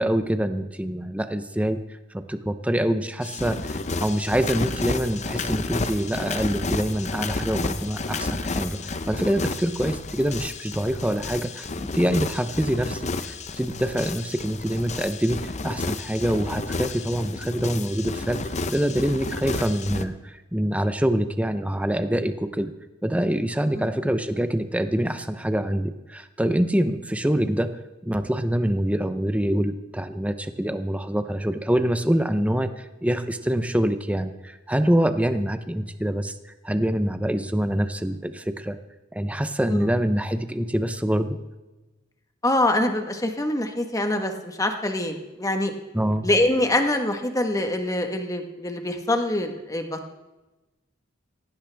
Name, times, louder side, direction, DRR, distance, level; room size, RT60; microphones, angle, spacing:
voice 1, 0.0-1.8 2.1-11.7 11.9-18.4 18.7-22.7 23.0-27.7 28.0-36.3 36.6-38.8 39.1-41.4 45.9-46.3, equal, 5° right, 9 dB, 0.7 m, -25 dB
sound 1, 3.2-20.0, left 3 dB, 35° left, 0.7 m, -31 dB
voice 2, 42.4-45.7 46.2-50.1, left 1 dB, 20° left, 5 dB, 1.3 m, -24 dB
17.0 x 16.0 x 3.5 m, 1.1 s
head